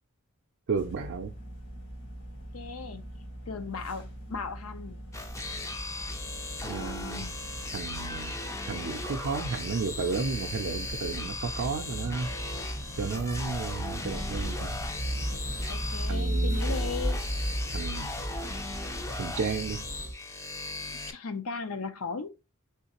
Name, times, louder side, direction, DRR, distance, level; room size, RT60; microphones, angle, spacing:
voice 1, 0.7-1.3 6.6-7.3 7.7-8.4 8.7-12.3 13.0-14.8 16.1-16.8 17.7-18.1 19.2-19.8, right 5 dB, 60° right, 0.4 m, -33 dB
sound 1, 0.8-20.1, equal, 55° left, 1.5 m, -36 dB
voice 2, 2.5-3.0 3.5-5.0 6.8-7.3 15.7-17.2 21.1-22.3, left 4 dB, 75° left, 0.6 m, -37 dB
sound 2, 5.1-21.1, left 2 dB, 15° left, 0.4 m, -38 dB
3.5 x 3.2 x 2.9 m
head